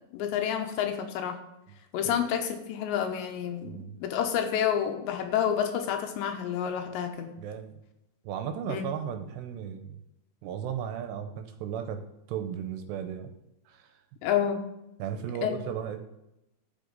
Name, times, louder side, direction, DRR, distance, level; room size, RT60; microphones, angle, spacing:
voice 1, 0.1-1.4 1.9-3.7 4.0-7.3 8.7-8.8 14.2-14.6 15.4-15.5, left 9 dB, 85° left, 6 dB, 3.0 m, -29 dB
voice 2, 3.6-4.0 7.4-7.7 8.2-10.0 10.4-12.0 12.3-13.3 13.7-13.9 15.0-16.0, right 8 dB, 80° right, 6 dB, 2.7 m, -35 dB
12.0 x 6.8 x 3.9 m, 0.88 s
omnidirectional pair, 5.2 m